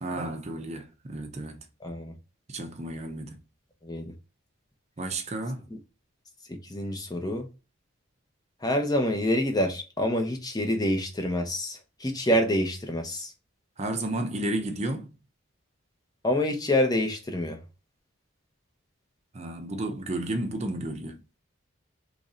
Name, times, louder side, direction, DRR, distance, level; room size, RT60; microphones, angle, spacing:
voice 1, 0.0-1.6 2.5-3.4 5.0-5.7 13.8-15.1 19.3-21.2, right 1 dB, 30° right, 0.6 m, -32 dB
voice 2, 1.8-2.1 3.8-4.1 6.7-7.5 8.6-13.3 16.2-17.6, left 1 dB, 20° left, 0.7 m, -27 dB
3.1 x 2.6 x 3.7 m
head